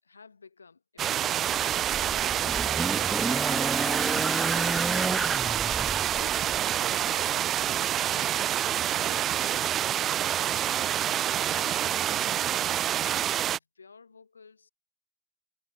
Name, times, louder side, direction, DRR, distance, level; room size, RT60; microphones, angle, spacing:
voice 1, 0.0-3.2 3.8-8.5 8.9-13.0 13.5-14.7, left 5 dB, 85° left, 6.0 m, -54 dB
sound 1, 1.0-13.6, right 11 dB, 45° right, 0.6 m, -27 dB
sound 2, 1.4-6.7 7.7-7.8, right 2 dB, 15° right, 1.0 m, -31 dB
figure-of-eight pair, 65°, 0 cm